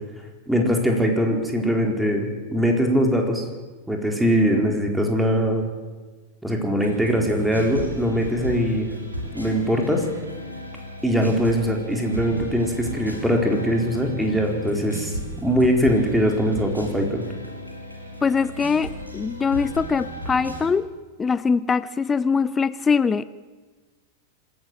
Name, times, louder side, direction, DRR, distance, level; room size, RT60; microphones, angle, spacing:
voice 1, 0.5-3.4 3.9-5.6 6.4-8.9 9.3-10.1 11.0-17.3, equal, 5° right, 1 dB, 4.2 m, -22 dB
sound 1, 6.8-20.7, right 1 dB, 90° right, 4.9 m, -36 dB
voice 2, 18.2-20.9 21.2-23.3, left 5 dB, 15° left, 16 dB, 0.6 m, -22 dB
26.0 x 14.0 x 7.8 m, 1.3 s
figure-of-eight pair, 90°, 0 cm